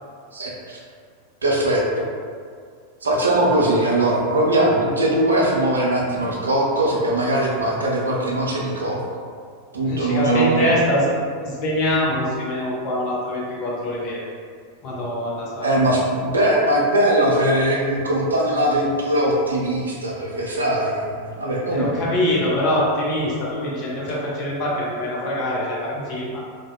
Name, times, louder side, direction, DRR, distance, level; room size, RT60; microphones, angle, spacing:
voice 1, 0.3-0.8 1.4-2.1 3.0-9.0 9.7-10.7 15.6-21.9, right 1 dB, 75° right, -3 dB, 0.4 m, -20 dB
voice 2, 9.8-11.1 11.4-14.2 14.8-15.7 21.7-26.4, left 1 dB, 40° left, -5 dB, 0.5 m, -24 dB
2.6 x 2.1 x 2.3 m, 2.1 s
figure-of-eight pair, 90°, 0 cm